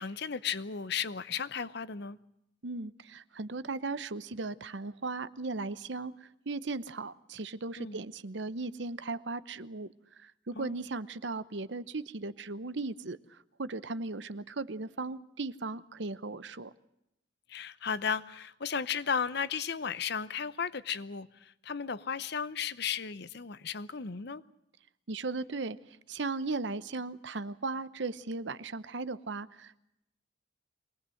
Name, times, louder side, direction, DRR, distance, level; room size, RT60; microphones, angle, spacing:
voice 1, 0.0-2.2 7.8-8.0 10.6-10.9 17.5-24.4, left 6 dB, 55° left, 0.8 m, -35 dB
voice 2, 2.6-6.1 6.5-9.9 10.2-16.7 25.1-25.8 26.1-29.8, right 3 dB, 65° right, 0.9 m, -37 dB
24.0 x 19.0 x 7.8 m
head